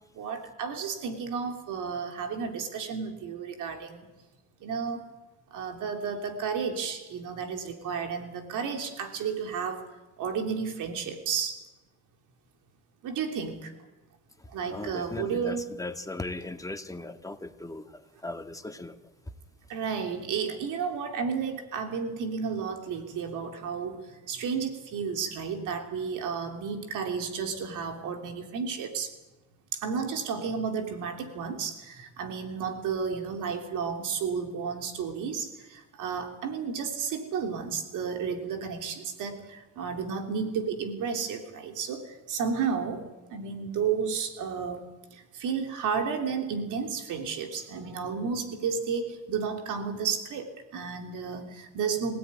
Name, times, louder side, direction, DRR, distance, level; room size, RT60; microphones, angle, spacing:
voice 1, 0.1-4.0 4.6-5.0 5.5-9.8 10.2-11.6 13.0-13.7 14.5-15.6 19.7-29.1 29.7-43.0 43.3-44.9 45.1-52.2, right 6 dB, 85° right, 4 dB, 3.3 m, -32 dB
voice 2, 14.4-19.0, left 2 dB, 10° left, 6 dB, 2.0 m, -38 dB
25.0 x 16.5 x 9.8 m, 1.1 s
cardioid pair, 90°, 30 cm